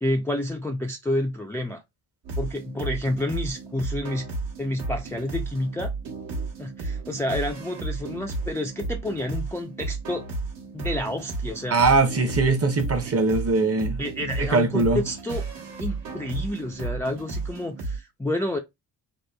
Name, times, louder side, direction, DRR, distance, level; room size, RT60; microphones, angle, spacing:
voice 1, 0.0-1.8 2.4-4.3 4.6-5.9 6.6-10.2 10.7-11.8 14.0-15.4 15.8-18.6, left 1 dB, 5° left, 0.3 m, -29 dB
sound 1, 2.2-18.0, right 3 dB, 70° right, 1.1 m, -33 dB
voice 2, 11.7-14.0 14.4-15.0, right 3 dB, 35° right, 0.7 m, -21 dB
2.9 x 2.1 x 2.2 m
supercardioid pair, 55°, 44 cm